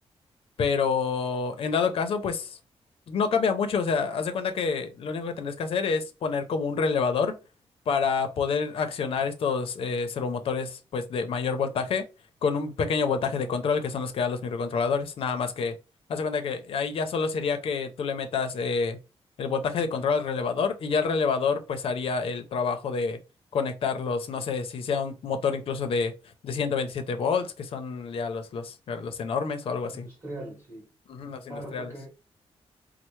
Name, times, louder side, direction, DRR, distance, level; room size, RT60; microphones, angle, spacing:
voice 1, 0.6-2.6 3.1-7.3 7.9-12.0 12.4-15.7 16.1-19.0 19.4-23.2 23.5-26.1 26.4-30.1 31.1-31.9, left 5 dB, 65° left, 0.5 m, -28 dB
voice 2, 29.9-30.9 31.5-32.1, right 1 dB, 25° right, 2.0 m, -41 dB
4.3 x 2.0 x 3.0 m
wide cardioid pair, 175°, 10 cm